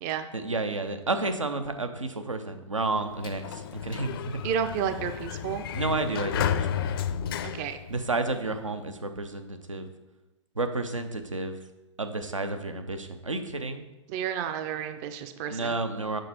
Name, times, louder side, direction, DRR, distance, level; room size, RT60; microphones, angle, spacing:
voice 1, 0.3-4.4 5.7-7.0 7.9-9.9 10.6-11.6 12.0-13.8 15.5-16.2, right 3 dB, 90° right, 7 dB, 0.7 m, -31 dB
Sliding door, 2.9-8.6, left 9 dB, 50° left, 0.4 m, -32 dB
voice 2, 4.4-5.6 7.4-7.8 14.1-15.8, right 8 dB, 30° right, 9 dB, 0.4 m, -31 dB
6.4 x 4.7 x 4.2 m, 1.1 s
figure-of-eight pair, 115°, 16 cm